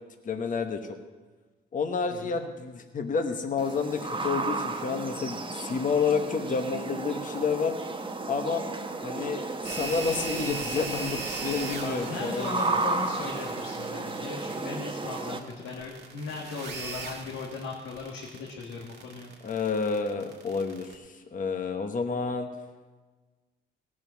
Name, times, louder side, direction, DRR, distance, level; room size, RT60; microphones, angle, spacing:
voice 1, 0.2-1.0 1.7-7.7 8.3-8.6 9.0-12.6 19.4-22.5, left 5 dB, 40° left, 5 dB, 1.1 m, -30 dB
voice 2, 2.1-2.4 11.8-19.3, left 4 dB, 90° left, -2 dB, 1.6 m, -38 dB
sound 1, 3.6-15.4, right 3 dB, 25° right, 1.1 m, -33 dB
sound 2, 9.6-20.9, right 4 dB, 60° right, 2.0 m, -39 dB
17.0 x 6.2 x 6.3 m, 1.3 s
cardioid pair, 90°, 20 cm